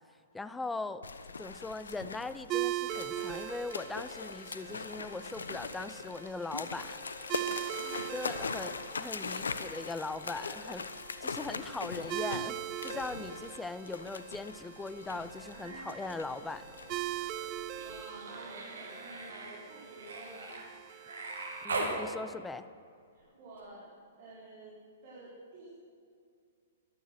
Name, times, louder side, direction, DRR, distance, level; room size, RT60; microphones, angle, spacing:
voice 1, 0.3-1.0 1.4-7.0 8.1-10.8 11.2-16.7 21.6-22.7, left 3 dB, 10° left, 13 dB, 0.6 m, -40 dB
sound 1, 1.0-18.0, left 4 dB, 80° left, 0.8 m, -41 dB
sound 2, 2.5-21.6, right 14 dB, 35° right, 0.6 m, -41 dB
voice 2, 7.8-8.1 17.8-20.5 20.8-21.6 23.1-23.9 24.2-24.8 25.0-25.8, right 2 dB, 50° right, -7 dB, 4.6 m, -51 dB
Human voice, 15.3-16.1 16.4-22.0 23.6-23.7, right 3 dB, 75° right, 2.6 m, -41 dB
14.0 x 12.0 x 6.3 m, 2.3 s
figure-of-eight pair, 115°, 0 cm